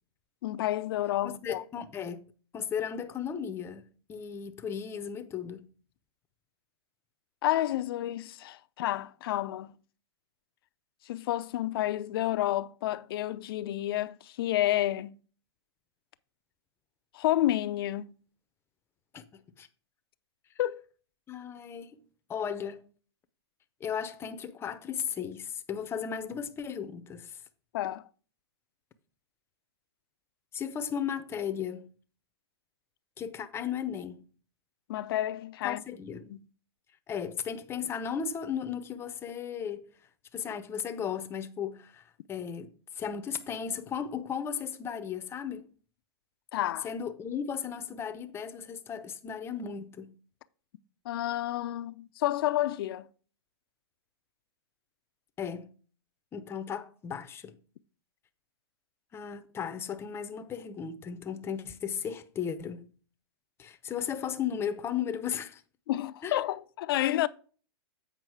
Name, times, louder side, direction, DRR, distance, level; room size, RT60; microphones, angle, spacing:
voice 1, 0.4-1.6 7.4-9.8 11.1-15.2 17.1-18.1 20.6-20.8 27.7-28.0 34.9-35.8 36.3-36.4 46.5-46.9 51.0-53.1 65.9-67.3, left 14 dB, 60° left, 0.5 m, -30 dB
voice 2, 1.4-2.3 2.5-5.7 19.1-19.7 21.3-22.0 22.3-22.8 23.8-27.4 30.5-31.9 33.2-34.2 35.6-36.3 37.1-39.9 40.3-42.0 42.3-45.7 46.8-50.1 55.4-55.7 56.3-57.6 59.1-62.9 63.6-65.6 66.2-66.4, left 7 dB, 15° left, 0.7 m, -35 dB
8.0 x 5.3 x 4.8 m
hypercardioid pair, 140°, 14 cm